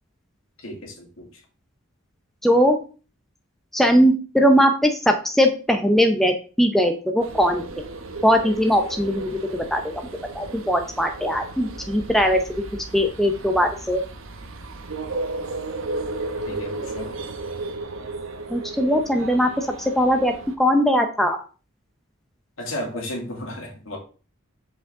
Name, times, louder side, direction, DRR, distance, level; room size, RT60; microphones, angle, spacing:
voice 1, 0.6-1.3 16.5-17.1 22.6-24.0, left 1 dB, 70° left, 1 dB, 2.3 m, -33 dB
voice 2, 2.4-2.8 3.7-7.6 8.2-9.9 10.3-12.4 12.9-14.0 18.5-19.7 20.0-21.4, equal, ahead, 4 dB, 0.6 m, -20 dB
sound 1, 7.2-20.6, right 2 dB, 70° right, 1.0 m, -34 dB
6.8 x 5.2 x 3.7 m, 0.36 s
head